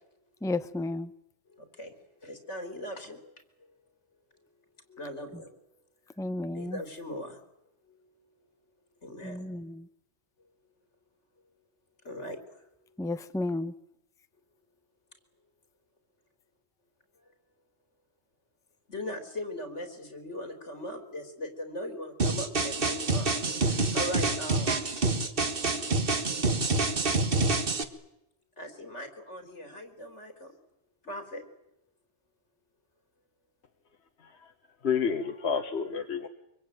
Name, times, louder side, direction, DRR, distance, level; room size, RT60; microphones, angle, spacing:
voice 1, 0.4-1.1 5.3-5.4 6.2-6.8 9.2-9.9 13.0-13.7, left 2 dB, 5° left, 12 dB, 0.8 m, -32 dB
voice 2, 1.6-1.9 2.2-3.2 4.9-5.6 6.5-7.4 9.0-9.6 12.0-12.4 18.9-23.3 23.6-24.8 28.6-30.5 31.0-31.4, left 1 dB, 85° left, 7 dB, 4.1 m, -39 dB
sound 1, 22.2-27.8, right 3 dB, 50° right, 1.8 m, -27 dB
voice 3, 34.8-36.3, left 6 dB, 65° left, 6 dB, 1.5 m, -30 dB
24.5 x 24.5 x 9.2 m, 0.86 s
omnidirectional pair, 1.2 m